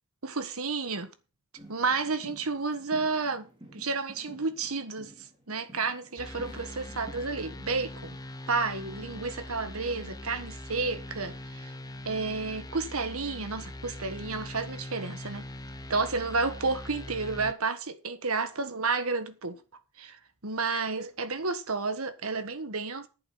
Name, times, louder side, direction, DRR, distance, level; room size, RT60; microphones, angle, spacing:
voice 1, 0.2-1.1 1.7-3.5 3.7-5.1 5.5-8.2 8.5-11.7 12.0-15.5 15.9-19.6 20.0-23.1, right 4 dB, 75° right, 1.5 m, -31 dB
sound 1, 1.6-7.2, right 1 dB, 20° right, 3.8 m, -51 dB
sound 2, 6.2-17.5, left 1 dB, 15° left, 1.0 m, -42 dB
11.0 x 8.6 x 5.7 m
head